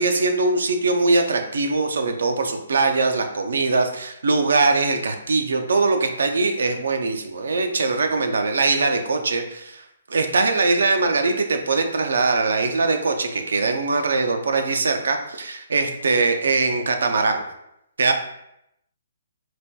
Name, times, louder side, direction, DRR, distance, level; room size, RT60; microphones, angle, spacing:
voice 1, 0.0-17.4 18.0-18.1, right 3 dB, 85° right, 5 dB, 0.4 m, -21 dB
4.1 x 2.2 x 2.2 m, 0.80 s
hypercardioid pair, 170°, 0 cm